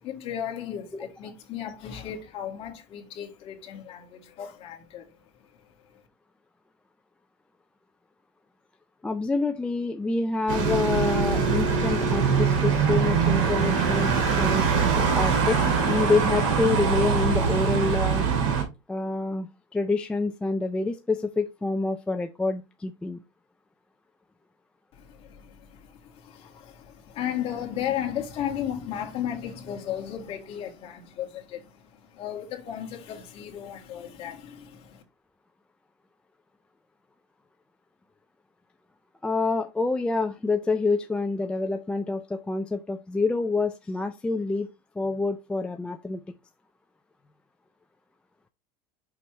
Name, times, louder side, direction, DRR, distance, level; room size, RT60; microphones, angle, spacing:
voice 1, 0.0-5.1 24.9-35.0, left 10 dB, 40° left, 1.9 m, -35 dB
voice 2, 9.0-14.7 15.1-18.3 18.9-23.2 39.2-44.7 45.0-46.2, left 3 dB, 5° left, 0.3 m, -27 dB
sound 1, 10.5-18.6, right 5 dB, 85° right, 3.0 m, -23 dB
6.0 x 5.8 x 3.2 m
supercardioid pair, 155°, 15 cm